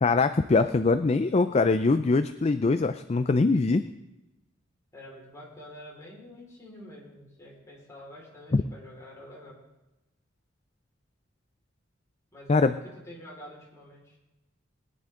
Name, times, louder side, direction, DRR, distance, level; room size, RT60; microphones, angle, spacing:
voice 1, 0.0-3.8 8.5-8.6 12.5-12.7, left 3 dB, 30° left, 10 dB, 0.4 m, -23 dB
voice 2, 4.9-9.6 12.3-14.2, left 1 dB, 15° left, -5 dB, 4.6 m, -47 dB
21.0 x 10.0 x 3.8 m, 0.97 s
head